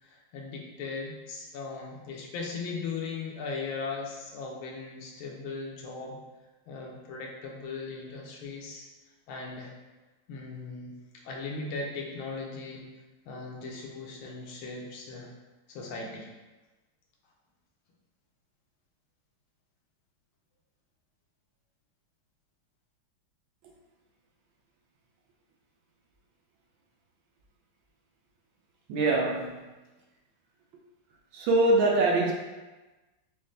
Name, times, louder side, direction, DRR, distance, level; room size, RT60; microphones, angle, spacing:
voice 1, 0.0-6.2 6.7-8.9 9.3-9.7 10.3-11.0 11.2-12.8 13.3-15.3 15.7-16.3, left 4 dB, 85° left, -1 dB, 1.5 m, -38 dB
voice 2, 28.9-29.7 31.3-32.3, right 2 dB, 75° right, -1 dB, 1.3 m, -23 dB
5.3 x 2.1 x 3.1 m, 1.2 s
omnidirectional pair, 2.2 m